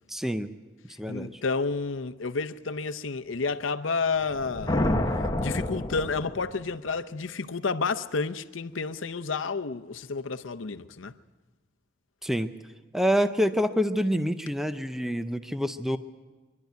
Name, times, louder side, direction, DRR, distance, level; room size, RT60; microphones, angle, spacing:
voice 1, 0.1-0.5 1.0-1.4 12.2-12.5 12.9-16.0, equal, ahead, 0.6 m, -27 dB
voice 2, 1.1-4.9 5.4-11.2, left 4 dB, 75° left, 0.8 m, -30 dB
sound 1, 4.2-6.7, left 1 dB, 20° left, 1.1 m, -28 dB
24.0 x 12.0 x 9.2 m
head